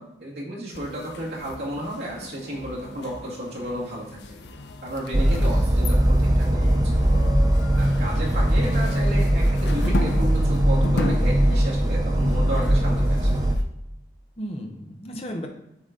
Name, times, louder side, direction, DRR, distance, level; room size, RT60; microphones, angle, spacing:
voice 1, 0.0-4.4 4.8-7.0 7.7-13.4, right 1 dB, 70° right, -5 dB, 2.2 m, -33 dB
sound 1, 0.7-13.6, left 2 dB, 80° left, 0.6 m, -36 dB
sound 2, 5.1-13.6, right 1 dB, 20° right, 0.5 m, -20 dB
voice 2, 14.4-15.5, equal, 35° left, 2 dB, 0.8 m, -35 dB
7.3 x 4.1 x 3.8 m, 0.84 s
head